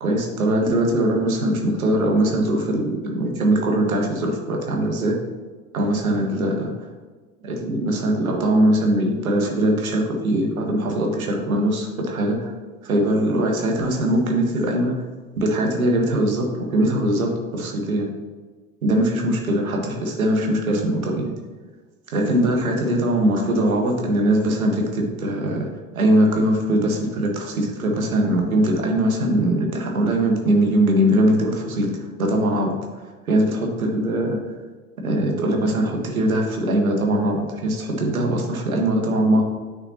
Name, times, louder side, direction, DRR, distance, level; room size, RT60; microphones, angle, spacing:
voice 1, 0.0-5.2 5.7-6.7 7.4-12.5 12.8-14.9 15.4-18.1 18.8-21.3 22.1-25.7 25.9-31.9 32.2-32.7 33.3-34.4 35.0-39.4, right 1 dB, 75° right, 1 dB, 1.7 m, -21 dB
9.6 x 6.0 x 2.9 m, 1.4 s
figure-of-eight pair, 80°, 42 cm